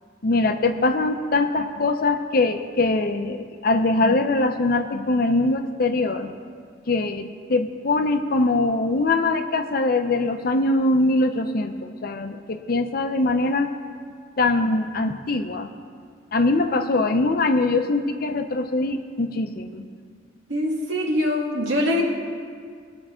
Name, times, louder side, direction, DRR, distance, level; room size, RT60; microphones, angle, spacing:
voice 1, 0.2-6.3 6.9-13.7 14.4-15.7 16.3-19.9, left 2 dB, 50° left, 7 dB, 0.7 m, -22 dB
voice 2, 20.5-22.0, left 1 dB, 80° right, -2 dB, 1.9 m, -23 dB
19.5 x 6.9 x 3.7 m, 2.1 s
head